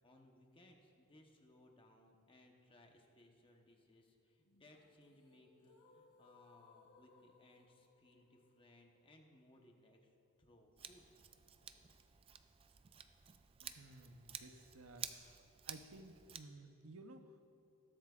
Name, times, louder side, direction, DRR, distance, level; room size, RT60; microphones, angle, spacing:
voice 1, 0.0-11.1, left 1 dB, 25° left, 2 dB, 1.0 m, -65 dB
sound 1, 4.5-10.5, left 4 dB, 85° left, 1.0 m, -68 dB
Scissors, 10.8-16.4, right 8 dB, 25° right, 0.4 m, -52 dB
voice 2, 13.6-15.3 15.7-17.4, right 2 dB, 70° right, 7 dB, 0.8 m, -56 dB
20.0 x 7.9 x 2.4 m, 2.8 s
head